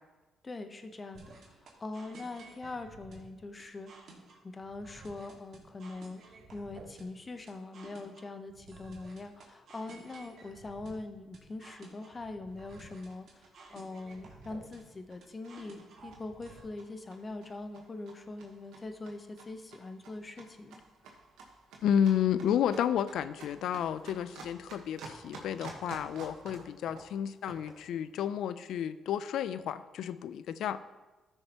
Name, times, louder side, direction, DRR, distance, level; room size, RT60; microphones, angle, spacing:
voice 1, 0.4-1.4 1.8-3.9 4.4-6.2 6.5-20.8, left 2 dB, 30° left, 8 dB, 0.8 m, -42 dB
sound 1, 1.1-16.6, right 3 dB, 60° right, 1.9 m, -53 dB
sound 2, 12.5-27.9, right 3 dB, 85° right, 1.2 m, -52 dB
voice 2, 21.8-30.8, left 9 dB, 75° left, 14 dB, 0.4 m, -31 dB
13.5 x 6.5 x 2.9 m, 1.2 s
cardioid pair, 90°, 0 cm